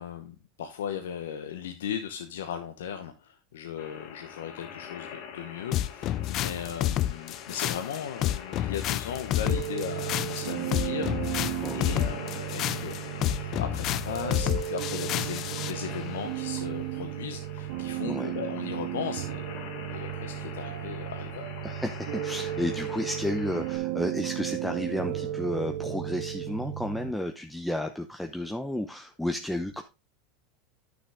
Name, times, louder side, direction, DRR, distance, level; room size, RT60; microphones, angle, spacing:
voice 1, 0.0-19.4 19.9-21.5, left 8 dB, 90° left, 6 dB, 0.9 m, -37 dB
sound 1, 3.8-23.8, left 7 dB, 65° left, 2.4 m, -44 dB
sound 2, 5.7-15.8, left 13 dB, 45° left, 0.5 m, -29 dB
sound 3, 9.4-27.1, right 13 dB, 70° right, 0.7 m, -34 dB
voice 2, 18.0-18.4 21.6-29.8, left 1 dB, 5° left, 5 dB, 0.8 m, -32 dB
9.7 x 6.5 x 3.5 m, 0.27 s
supercardioid pair, 110°, 0 cm